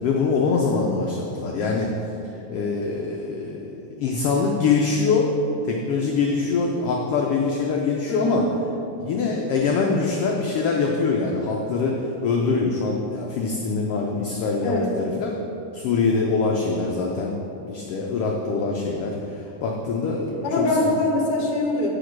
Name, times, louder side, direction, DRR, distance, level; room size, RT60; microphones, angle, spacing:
voice 1, 0.0-1.9 2.2-5.3 5.6-8.4 9.0-15.3 15.7-20.5, left 4 dB, 80° left, 0 dB, 1.3 m, -24 dB
voice 2, 8.1-8.5 14.6-14.9 20.4-21.9, left 2 dB, 55° left, -1 dB, 1.9 m, -23 dB
8.7 x 5.0 x 6.0 m, 2.9 s
omnidirectional pair, 3.4 m